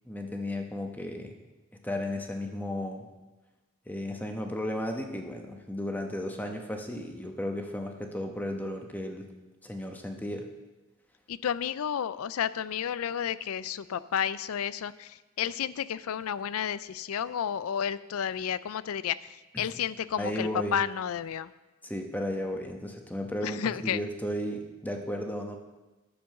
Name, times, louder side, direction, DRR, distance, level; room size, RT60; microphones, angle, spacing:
voice 1, 0.0-1.4 1.8-3.1 3.9-9.3 9.6-10.5 19.5-19.7 20.2-20.8 21.8-25.6, left 1 dB, 10° left, 3 dB, 1.1 m, -34 dB
voice 2, 11.3-21.5 23.4-24.0, left 8 dB, 85° left, 17 dB, 0.4 m, -31 dB
10.5 x 7.0 x 6.6 m, 1.1 s
head